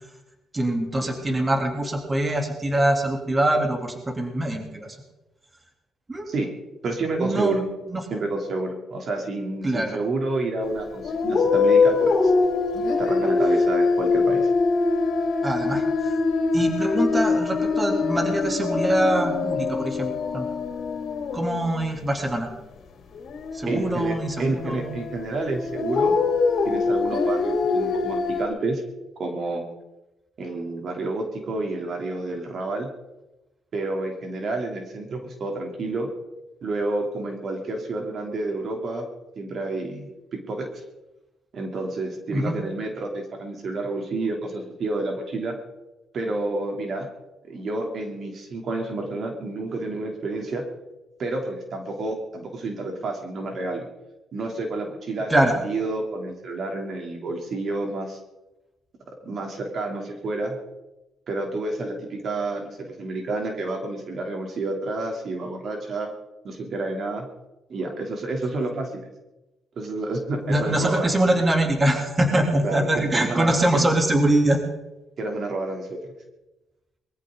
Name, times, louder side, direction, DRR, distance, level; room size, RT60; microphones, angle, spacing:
voice 1, 0.5-4.9 6.1-6.3 7.2-7.6 7.9-8.0 9.6-10.0 15.4-16.1 16.5-20.4 21.3-22.5 23.5-25.0 42.3-42.5 55.3-55.6 70.4-74.6, right 1 dB, 25° right, 2 dB, 3.3 m, -23 dB
voice 2, 6.8-7.6 8.1-12.3 13.0-14.4 23.7-26.1 26.7-28.8 29.2-29.6 30.4-32.9 33.7-36.1 36.6-39.1 39.4-40.7 41.5-45.6 46.1-47.1 47.4-50.6 51.2-53.9 54.3-58.2 59.3-60.6 61.3-66.1 66.4-67.3 67.7-69.1 69.8-71.1 72.6-73.9 75.2-76.0, right 2 dB, 55° right, 2 dB, 3.3 m, -29 dB
sound 1, 10.6-21.9 23.1-28.5, left 4 dB, 65° left, 2.8 m, -23 dB
22.5 x 15.0 x 4.0 m, 1.0 s
cardioid pair, 90°, 0 cm